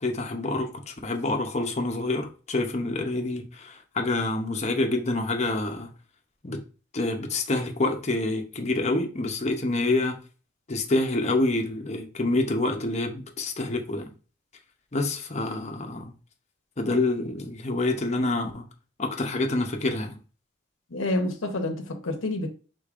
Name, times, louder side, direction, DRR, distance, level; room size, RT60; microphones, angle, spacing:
voice 1, 0.0-5.9 6.4-6.6 6.9-10.2 10.7-14.1 14.9-16.1 16.8-18.7 19.0-20.2, left 2 dB, 35° left, 0.7 m, -27 dB
voice 2, 20.9-22.5, left 1 dB, 85° left, 0.8 m, -28 dB
5.1 x 3.8 x 2.4 m
head